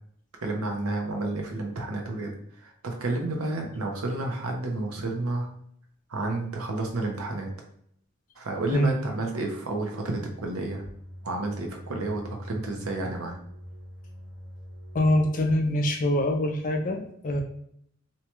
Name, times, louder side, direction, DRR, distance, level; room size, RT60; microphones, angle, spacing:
voice 1, 0.4-5.5 6.1-7.5 8.4-10.8 11.2-13.3, right 2 dB, 80° right, 2 dB, 0.7 m, -31 dB
sound 1, 10.1-15.3, equal, 15° right, 0.6 m, -44 dB
voice 2, 14.9-17.4, left 1 dB, 40° left, 5 dB, 0.4 m, -24 dB
2.7 x 2.2 x 2.9 m, 0.67 s
head